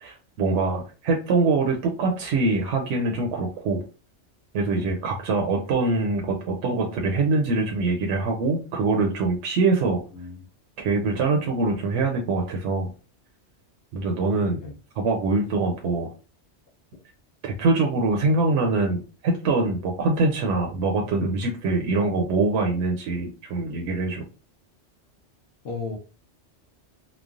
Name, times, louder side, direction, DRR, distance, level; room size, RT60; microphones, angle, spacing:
voice 1, 0.0-3.8 4.5-10.0 10.8-12.9 13.9-14.6 15.0-16.1 17.4-24.2, right 3 dB, 80° right, 1 dB, 0.9 m, -24 dB
voice 2, 25.6-26.0, left 4 dB, 65° left, -2 dB, 0.8 m, -34 dB
3.1 x 2.0 x 2.4 m, 0.33 s
omnidirectional pair, 1.2 m